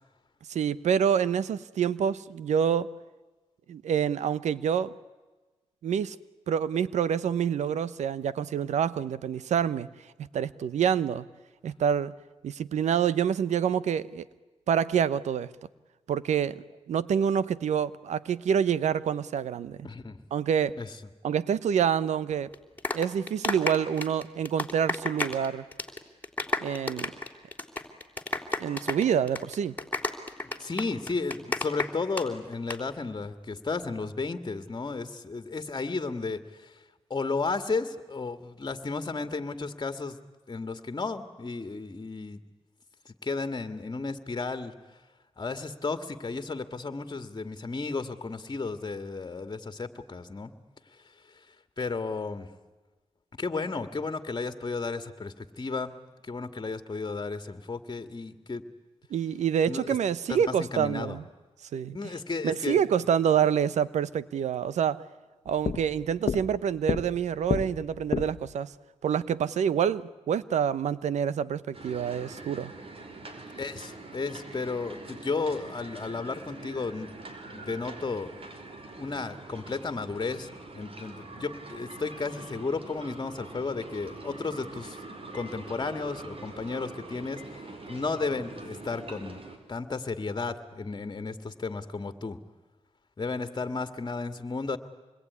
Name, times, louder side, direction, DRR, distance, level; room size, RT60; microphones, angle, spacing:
voice 1, 0.5-2.9 3.7-4.9 5.8-6.2 6.5-9.9 10.3-11.2 11.6-12.1 12.4-14.3 14.7-15.5 16.1-19.9 20.3-20.8 21.2-22.5 22.9-25.6 26.6-27.1 28.6-29.7 59.1-61.2 61.7-62.0 62.4-65.0 65.4-68.7 69.0-72.7, right 8 dB, 85° right, 18 dB, 0.9 m, -27 dB
voice 2, 19.8-20.2 20.8-20.9 30.4-36.8 37.1-40.2 40.5-42.4 43.1-44.7 45.4-50.5 51.3-51.4 51.8-52.5 53.4-55.9 56.2-58.6 59.7-60.0 60.3-61.2 61.9-62.8 73.6-77.1 77.5-78.3 79.0-85.0 85.3-89.4 89.7-92.4 93.2-94.8, left 4 dB, 35° left, 9 dB, 2.2 m, -33 dB
sound 1, 22.5-25.5 25.7-26.0 26.2-32.2 32.5-32.8, left 2 dB, 15° left, 3.4 m, -31 dB
sound 2, 65.5-68.6, left 6 dB, 55° left, 1.2 m, -32 dB
sound 3, 71.7-89.6, right 2 dB, 55° right, 4.7 m, -44 dB
26.5 x 21.5 x 9.7 m, 1.2 s
cardioid pair, 60°, 12 cm